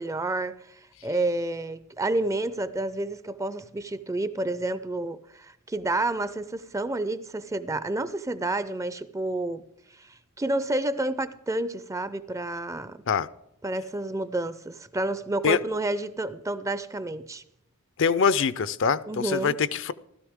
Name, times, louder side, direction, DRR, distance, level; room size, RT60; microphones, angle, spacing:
voice 1, 0.0-9.6 9.9-13.0 13.6-17.4 19.1-19.6, right 2 dB, 15° right, 0.4 m, -30 dB
voice 2, 18.0-19.9, left 6 dB, 55° left, 0.5 m, -24 dB
16.0 x 13.0 x 3.6 m
head